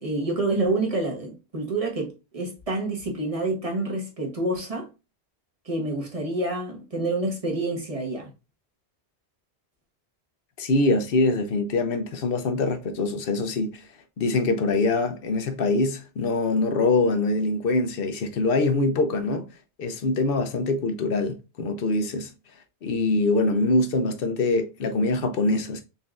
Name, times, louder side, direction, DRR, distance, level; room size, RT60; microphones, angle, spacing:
voice 1, 0.0-4.9 5.6-8.3, right 2 dB, 35° right, 1.2 m, -28 dB
voice 2, 10.6-13.8 14.2-19.5 19.8-22.3 22.8-25.8, left 2 dB, 60° left, 0.8 m, -24 dB
4.1 x 3.5 x 2.5 m
omnidirectional pair, 1.1 m